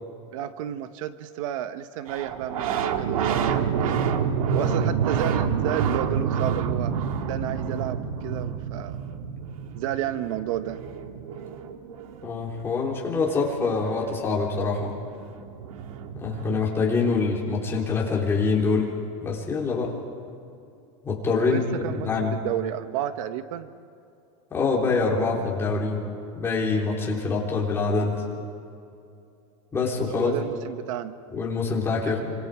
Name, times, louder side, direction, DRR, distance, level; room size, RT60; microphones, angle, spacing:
voice 1, 0.3-4.0 4.5-6.9 7.3-9.0 9.7-10.8 21.4-23.7 30.1-31.2 32.0-32.1, right 12 dB, 70° right, 10 dB, 1.1 m, -31 dB
sound 1, 2.1-12.5 14.6-14.7 14.8-16.6, right 7 dB, 90° right, 1.7 m, -28 dB
voice 2, 12.2-14.9 16.1-19.0 19.2-20.0 21.0-21.6 22.0-22.4 24.5-26.0 26.3-28.3 29.7-30.3 31.3-32.3, left 4 dB, 15° left, -3 dB, 3.6 m, -25 dB
27.0 x 26.0 x 4.9 m, 2.6 s
supercardioid pair, 160°, 18 cm